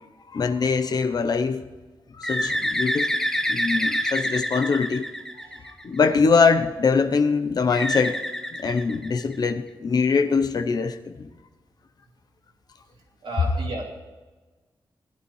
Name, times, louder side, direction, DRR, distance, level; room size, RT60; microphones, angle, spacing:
voice 1, 0.3-1.6 2.2-3.1 3.5-5.0 5.8-8.2 8.6-11.3, left 5 dB, 50° left, 0.7 m, -22 dB
Bird, 2.2-6.0 7.7-9.5, equal, 5° left, 0.6 m, -27 dB
voice 2, 5.3-5.8 13.2-13.8, right 2 dB, 90° right, 2.7 m, -34 dB
20.0 x 11.5 x 3.2 m
wide cardioid pair, 170°, 9 cm